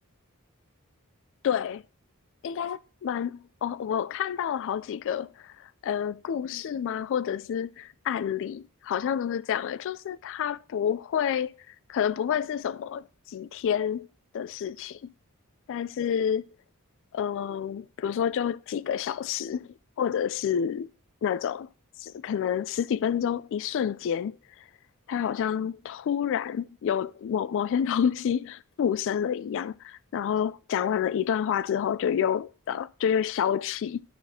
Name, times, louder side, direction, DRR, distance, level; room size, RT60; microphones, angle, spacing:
voice 1, 1.4-1.8 2.4-14.1 14.3-15.1 15.7-16.5 17.1-19.7 20.0-20.9 21.2-21.7 22.0-24.6 25.1-34.0, left 8 dB, 60° left, 0.3 m, -29 dB
12.0 x 4.1 x 4.2 m
head